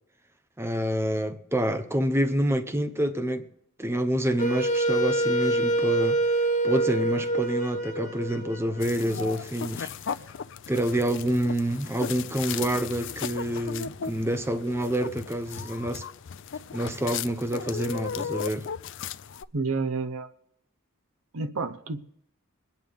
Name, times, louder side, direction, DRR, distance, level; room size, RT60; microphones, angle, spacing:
voice 1, 0.6-3.5 3.8-6.2 6.6-9.9 10.7-16.0 16.7-18.7, right 1 dB, 10° right, 0.7 m, -27 dB
Wind instrument woodwind instrument, 4.4-9.3, right 2 dB, 35° left, 0.9 m, -26 dB
sound 1, 8.8-19.4, left 7 dB, 60° left, 0.5 m, -36 dB
voice 2, 19.5-20.3 21.3-22.0, right 4 dB, 75° right, 0.8 m, -29 dB
22.5 x 9.4 x 3.5 m
head